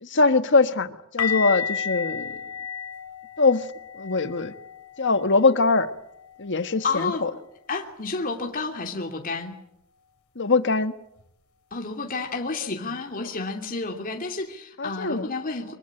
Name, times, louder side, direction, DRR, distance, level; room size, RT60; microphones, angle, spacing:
voice 1, 0.0-2.3 3.4-3.7 3.9-4.5 5.0-5.9 6.4-7.3 10.3-10.9 13.2-13.3 14.8-15.3, left 3 dB, 55° left, 1.5 m, -22 dB
sound 1, 1.2-7.0 7.2-7.5 7.8-8.0 11.2-11.3, left 7 dB, 80° left, 3.5 m, -33 dB
voice 2, 6.8-7.3 7.7-9.6 11.7-15.7, left 3 dB, 40° left, 2.9 m, -30 dB
24.5 x 23.0 x 8.9 m
head